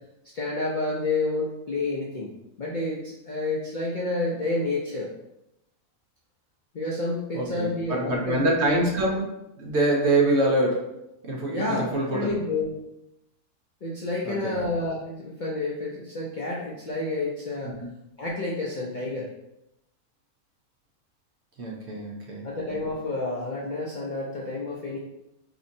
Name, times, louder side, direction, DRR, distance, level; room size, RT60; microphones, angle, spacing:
voice 1, 0.3-2.3 2.6-5.1 6.7-8.8 11.5-12.7 13.8-17.7 18.2-19.3 22.4-25.0, left 2 dB, 90° left, -4 dB, 0.4 m, -29 dB
voice 2, 7.3-9.2 9.6-11.0 11.2-12.3 14.2-14.6 17.6-17.9 21.6-22.5, right 1 dB, 55° right, -2 dB, 0.9 m, -25 dB
4.2 x 2.8 x 2.6 m, 0.89 s
omnidirectional pair, 1.6 m